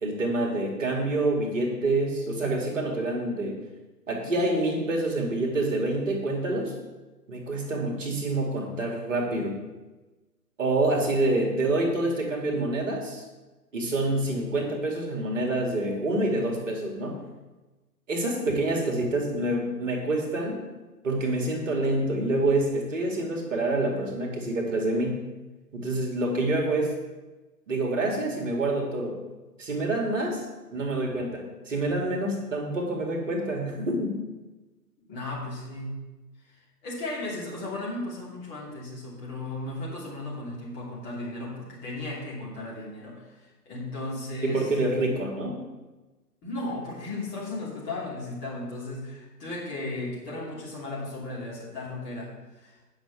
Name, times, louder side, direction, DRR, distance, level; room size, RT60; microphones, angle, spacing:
voice 1, 0.0-3.6 4.1-6.7 7.3-9.6 10.6-13.2 13.7-17.2 18.1-20.6 21.0-25.2 25.7-26.9 27.7-29.2 29.6-30.5 30.7-34.2 44.4-45.6, right 2 dB, 50° right, 0 dB, 2.2 m, -27 dB
voice 2, 35.1-36.0 36.5-44.7 46.4-52.3 52.6-52.7, left 2 dB, 20° left, -6 dB, 2.8 m, -35 dB
8.7 x 6.1 x 7.2 m, 1.2 s
figure-of-eight pair, 130°, 49 cm